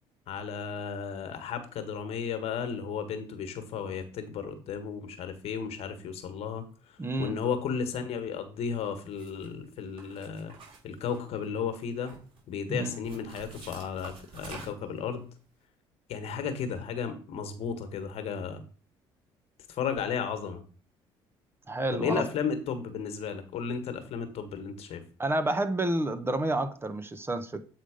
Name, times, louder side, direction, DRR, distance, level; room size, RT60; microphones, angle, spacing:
voice 1, 0.3-10.5 10.8-12.1 12.5-15.3 16.1-18.6 19.7-20.6 21.9-25.0, left 6 dB, 65° left, 1.4 m, -34 dB
voice 2, 7.0-7.4 12.7-13.0 21.7-22.2 25.2-27.6, right 1 dB, 20° right, 1.0 m, -29 dB
sound 1, 9.1-9.5 10.0-11.4 11.8-12.4 13.0-15.0, right 4 dB, 55° right, 4.2 m, -47 dB
8.2 x 3.8 x 5.1 m
supercardioid pair, 75°, 11 cm